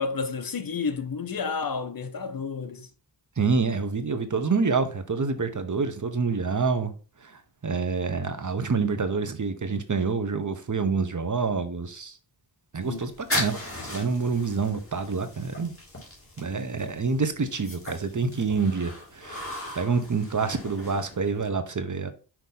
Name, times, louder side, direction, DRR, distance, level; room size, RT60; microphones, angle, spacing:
voice 1, 0.0-2.9 12.8-13.1, left 5 dB, 50° left, 0.7 m, -31 dB
voice 2, 3.4-6.9 7.2-12.1 12.7-13.6 13.8-15.7 16.4-22.1, right 4 dB, 45° right, 1.0 m, -27 dB
sound 1, 12.8-21.5, left 1 dB, 30° left, 2.5 m, -38 dB
6.0 x 3.0 x 5.4 m
wide cardioid pair, 80°, 44 cm